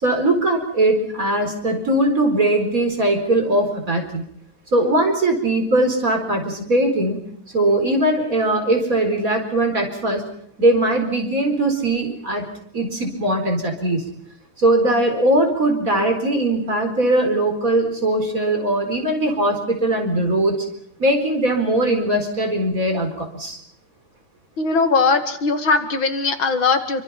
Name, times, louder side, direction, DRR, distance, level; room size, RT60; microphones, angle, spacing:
voice 1, 0.0-4.2 4.7-7.2 7.5-10.2 10.6-12.4 12.7-14.0 14.6-20.7 21.0-23.6, right 1 dB, 40° right, 3 dB, 4.8 m, -20 dB
voice 2, 24.6-27.0, left 4 dB, 65° left, 7 dB, 2.7 m, -19 dB
27.0 x 24.5 x 6.0 m, 0.68 s
omnidirectional pair, 2.3 m